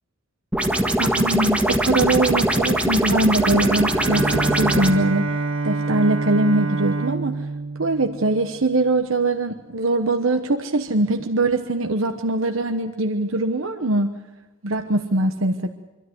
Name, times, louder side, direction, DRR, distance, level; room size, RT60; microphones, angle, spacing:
sound 1, 0.5-4.9, right 1 dB, 5° right, 1.7 m, -21 dB
voice 1, 1.0-5.3 5.6-7.4 7.8-14.1 14.6-15.7, right 2 dB, 85° right, 6 dB, 1.1 m, -22 dB
Bowed string instrument, 3.3-8.8, right 3 dB, 70° right, 1.7 m, -27 dB
25.0 x 13.5 x 9.4 m, 1.2 s
head